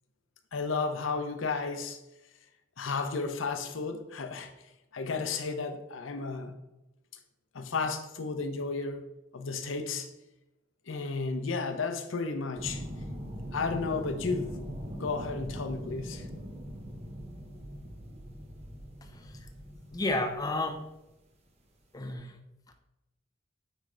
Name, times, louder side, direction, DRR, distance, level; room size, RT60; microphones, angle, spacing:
voice 1, 0.5-2.0 2.8-4.5 4.9-6.5 7.5-9.0 9.3-10.1 10.9-12.8 13.5-14.6 15.0-16.2, left 4 dB, 80° left, 0.7 m, -33 dB
sound 1, 12.6-20.7 22.1-22.2, equal, 35° right, 0.8 m, -41 dB
voice 2, 19.0-19.5 19.9-20.9 21.9-22.4, left 2 dB, 20° left, 0.5 m, -32 dB
9.4 x 3.2 x 3.8 m
head